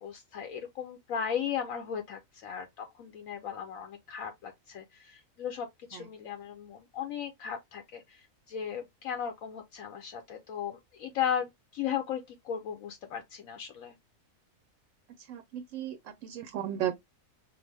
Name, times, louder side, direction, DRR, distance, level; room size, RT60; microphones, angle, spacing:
voice 1, 0.0-14.0, left 8 dB, 75° left, 1.1 m, -36 dB
voice 2, 15.3-16.9, right 11 dB, 70° right, 0.9 m, -35 dB
5.1 x 2.1 x 3.3 m
omnidirectional pair, 1.4 m